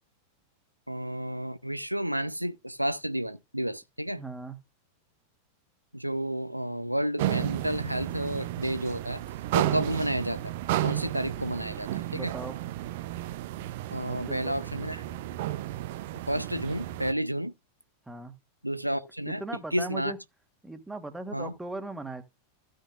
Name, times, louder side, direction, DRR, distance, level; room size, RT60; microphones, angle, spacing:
voice 1, 0.9-4.2 5.9-9.2 9.5-10.4 10.8-12.3 13.9-15.0 16.3-17.5 18.6-19.4 19.7-20.1 21.3-21.5, right 1 dB, 90° right, 0.5 m, -31 dB
voice 2, 4.2-4.6 9.6-9.9 12.1-12.6 14.1-14.6 18.1-18.3 19.3-20.2 20.6-22.2, right 2 dB, 5° right, 1.5 m, -38 dB
sound 1, 7.2-17.1, right 14 dB, 50° right, 0.7 m, -33 dB
15.5 x 6.5 x 2.5 m
figure-of-eight pair, 90°, 0 cm